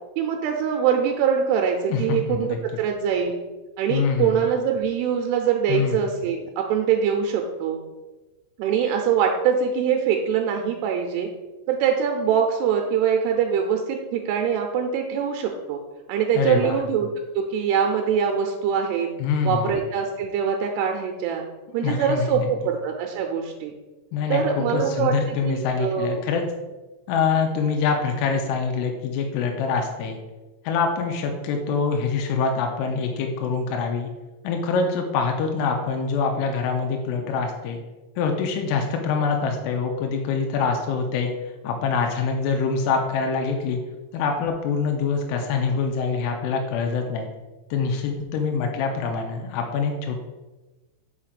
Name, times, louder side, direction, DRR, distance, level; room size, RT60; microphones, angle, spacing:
voice 1, 0.2-3.4 3.8-7.8 8.6-11.3 11.7-15.8 16.1-17.1 17.4-19.1 19.5-21.4 21.7-23.7 24.3-26.2, right 7 dB, 85° right, 3 dB, 2.6 m, -23 dB
voice 2, 1.9-2.6 3.9-4.4 5.7-6.0 16.4-16.8 19.2-19.7 21.8-22.5 24.1-26.4 27.1-30.2 30.6-34.1 34.4-37.8 38.2-41.3 41.6-43.8 44.1-47.3 47.7-50.2, left 5 dB, 90° left, 3 dB, 2.7 m, -25 dB
5.8 x 4.9 x 4.9 m, 1.1 s
omnidirectional pair, 4.8 m